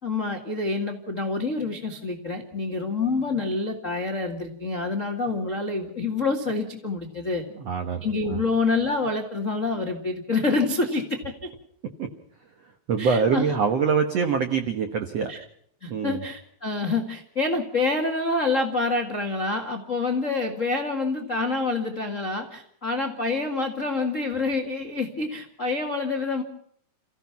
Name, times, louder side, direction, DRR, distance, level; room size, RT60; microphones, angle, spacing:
voice 1, 0.0-7.4 8.0-11.5 13.0-13.5 15.3-15.4 15.8-26.4, left 3 dB, 50° left, 3 dB, 0.8 m, -27 dB
voice 2, 7.6-8.4 12.0-12.1 12.9-15.3 15.9-16.2, right 6 dB, 75° right, 7 dB, 1.4 m, -24 dB
29.5 x 16.0 x 5.8 m, 0.67 s
omnidirectional pair, 5.0 m